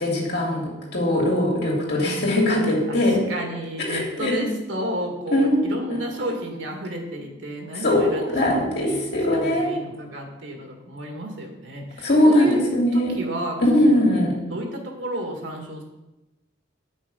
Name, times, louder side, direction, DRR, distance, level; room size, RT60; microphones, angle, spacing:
voice 1, 0.0-3.2 3.9-4.4 5.3-5.6 7.8-9.7 12.0-13.1 13.6-14.3, left 1 dB, 60° left, -3 dB, 2.9 m, -20 dB
voice 2, 2.9-9.0 9.3-12.6 12.9-14.2 14.5-15.8, right 1 dB, 75° right, 2 dB, 1.9 m, -32 dB
9.0 x 6.4 x 5.5 m, 1.0 s
head